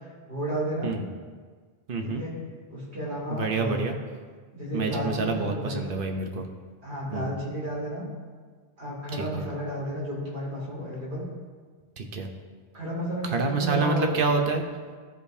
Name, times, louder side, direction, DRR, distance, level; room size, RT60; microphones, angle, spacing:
voice 1, 0.3-0.9 2.0-2.3 2.7-3.8 4.5-5.8 6.8-8.1 8.8-11.2 12.7-14.1, equal, 85° right, -6 dB, 2.8 m, -32 dB
voice 2, 1.9-2.2 3.3-4.0 4.7-6.5 7.1-7.3 9.1-9.5 12.0-12.3 13.2-14.6, right 4 dB, 55° right, 4 dB, 1.0 m, -27 dB
14.5 x 5.1 x 2.7 m, 1.5 s
omnidirectional pair, 1.1 m